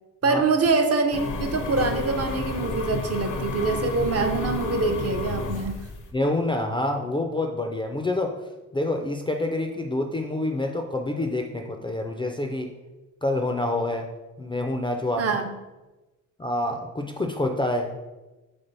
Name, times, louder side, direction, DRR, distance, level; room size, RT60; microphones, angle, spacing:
voice 1, 0.2-5.8 15.2-15.6, right 4 dB, 50° right, 5 dB, 0.6 m, -24 dB
sound 1, 1.1-6.1, left 3 dB, 80° left, 0.7 m, -30 dB
voice 2, 6.1-8.3 8.7-12.7 13.2-14.1 14.4-15.2 16.4-17.9, left 1 dB, 15° left, 3 dB, 0.3 m, -27 dB
3.6 x 3.4 x 3.9 m, 1.1 s
cardioid pair, 100°, 31 cm